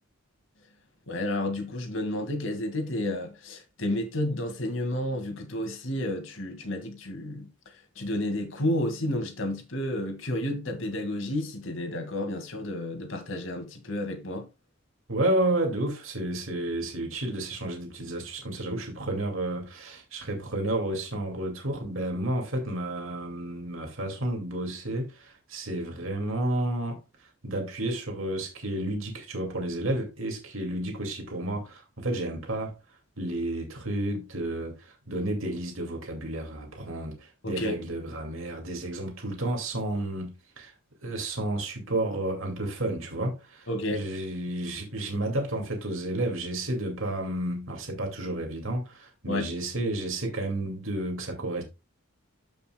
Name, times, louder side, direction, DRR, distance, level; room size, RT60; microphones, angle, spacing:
voice 1, 1.1-7.5 8.0-14.5 37.4-37.8 43.7-44.0 49.3-49.5, left 1 dB, 75° left, 2.1 m, -31 dB
voice 2, 15.1-27.0 27.4-32.8 33.2-40.7 41.0-51.6, right 1 dB, 80° right, 2.4 m, -31 dB
13.5 x 5.7 x 2.3 m
head